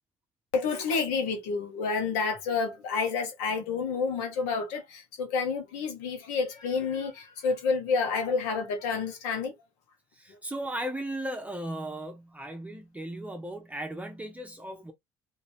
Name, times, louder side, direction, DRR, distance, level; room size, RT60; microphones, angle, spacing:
voice 1, 0.5-9.5, left 5 dB, 90° left, 1.3 m, -29 dB
voice 2, 10.1-14.9, right 1 dB, 10° right, 0.9 m, -36 dB
2.9 x 2.7 x 3.0 m
supercardioid pair, 80°, 13 cm